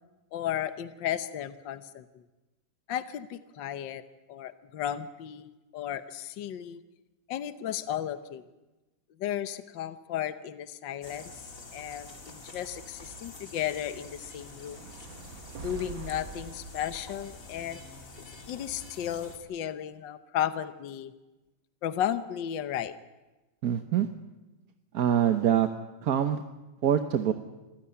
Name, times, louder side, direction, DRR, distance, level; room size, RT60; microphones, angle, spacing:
voice 1, 0.3-2.0 2.9-4.0 4.3-6.8 7.3-8.4 9.2-11.2 11.7-14.9 15.6-17.8 18.5-21.1 21.8-22.9, left 10 dB, 70° left, 12 dB, 1.6 m, -34 dB
sound 1, 11.0-19.4, left 2 dB, 40° left, 3.0 m, -47 dB
sound 2, 14.4-18.7, right 5 dB, 75° right, 2.3 m, -46 dB
voice 2, 23.6-24.1 24.9-25.7 26.0-26.4 26.8-27.3, right 9 dB, 55° right, 8 dB, 1.3 m, -24 dB
27.0 x 15.5 x 9.9 m, 1.1 s
omnidirectional pair, 2.1 m